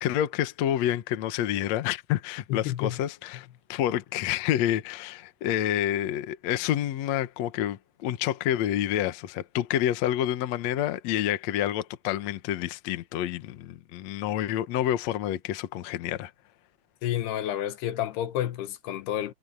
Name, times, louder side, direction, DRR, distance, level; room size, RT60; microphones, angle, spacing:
voice 1, 0.0-16.3, left 12 dB, 65° left, 1.8 m, -28 dB
voice 2, 2.5-3.0 17.0-19.3, left 12 dB, 85° left, 3.2 m, -30 dB
omnidirectional pair, 4.5 m